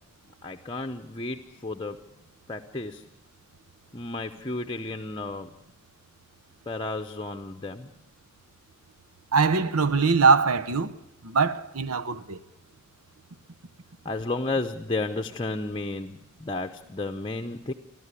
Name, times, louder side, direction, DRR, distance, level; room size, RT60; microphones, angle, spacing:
voice 1, 0.4-2.0 2.5-3.0 3.9-5.5 6.7-7.9 14.0-17.7, left 2 dB, 20° left, 0.8 m, -32 dB
voice 2, 9.3-11.0 11.2-12.4, right 4 dB, 85° right, 1.0 m, -22 dB
30.0 x 12.5 x 9.8 m
head